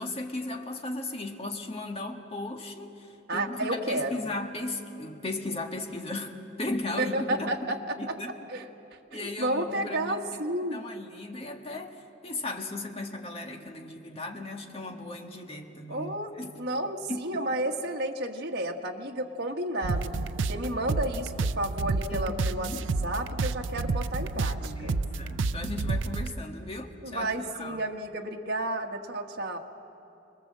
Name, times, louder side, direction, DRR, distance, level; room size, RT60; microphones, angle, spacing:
voice 1, 0.0-7.5 8.0-8.3 9.1-10.2 10.7-11.9 12.2-16.5 17.1-17.3 22.1-22.9 24.4-27.8, left 2 dB, 30° left, 3 dB, 1.7 m, -36 dB
voice 2, 3.3-4.3 7.0-8.2 8.5-8.7 9.1-10.8 15.9-16.3 16.6-20.1 20.4-22.7 23.0-25.0 27.0-29.6, right 1 dB, 55° right, 1 dB, 1.7 m, -31 dB
sound 1, 19.8-26.4, right 3 dB, 85° right, 0.6 m, -30 dB
27.0 x 21.5 x 7.6 m, 2.8 s
head